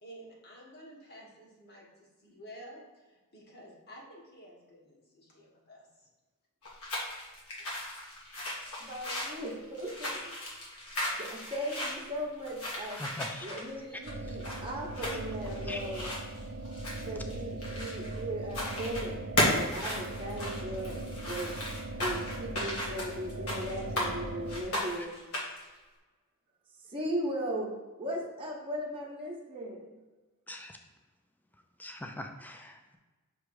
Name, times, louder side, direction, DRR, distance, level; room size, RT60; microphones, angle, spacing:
voice 1, 0.0-6.1, equal, 50° left, -3 dB, 1.6 m, -51 dB
sound 1, 6.6-18.2 18.5-19.0 19.4-24.1 24.5-25.7, left 1 dB, 70° left, 1.7 m, -35 dB
voice 2, 8.8-10.3 11.1-13.0 13.4-16.2 17.0-19.2 19.5-21.6 21.9-25.2 26.9-27.7 28.0-30.0, right 1 dB, 25° right, -3 dB, 1.0 m, -37 dB
voice 3, 13.0-13.5 14.3-14.4 15.0-15.2 15.7-15.8 25.0-25.1 30.5-30.8 31.8-33.0, left 1 dB, 10° left, 4 dB, 0.5 m, -42 dB
sound 2, 14.1-24.6, right 2 dB, 55° right, 0.6 m, -40 dB
6.0 x 3.3 x 4.8 m, 1.2 s
head